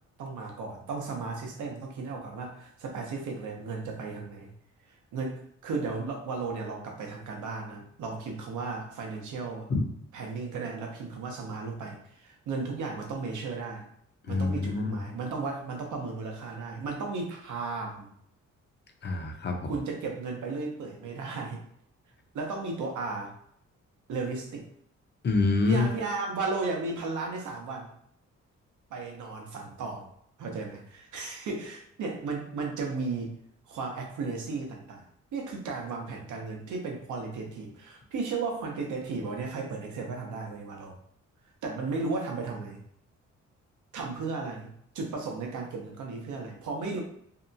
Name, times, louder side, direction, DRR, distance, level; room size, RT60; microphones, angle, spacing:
voice 1, 0.2-4.5 4.9-9.7 10.1-13.9 14.3-18.1 19.7-21.6 22.3-23.3 24.1-24.7 25.7-27.9 28.9-30.1 30.4-33.4 33.7-35.1 35.3-41.0 41.6-42.8 43.9-47.0, right 4 dB, 80° right, 1 dB, 0.7 m, -35 dB
voice 2, 14.2-15.0 19.0-19.8 25.2-25.9, left 3 dB, 35° left, 4 dB, 0.5 m, -26 dB
2.7 x 2.2 x 2.6 m, 0.67 s
cardioid pair, 75°, 30 cm